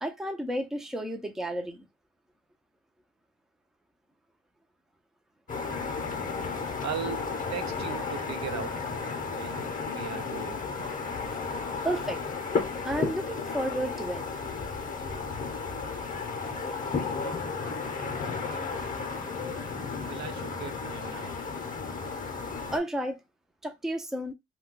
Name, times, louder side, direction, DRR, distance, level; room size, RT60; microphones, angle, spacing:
voice 1, 0.0-1.9 11.8-12.2 12.8-14.2 22.7-23.2 23.6-24.3, right 1 dB, ahead, 0.5 m, -32 dB
sound 1, 5.5-22.8, left 4 dB, 25° left, 0.8 m, -33 dB
voice 2, 6.8-8.9 9.2-10.6 19.4-19.7 20.1-21.4, right 7 dB, 65° right, 0.6 m, -38 dB
2.3 x 2.2 x 3.7 m
cardioid pair, 90°, 30 cm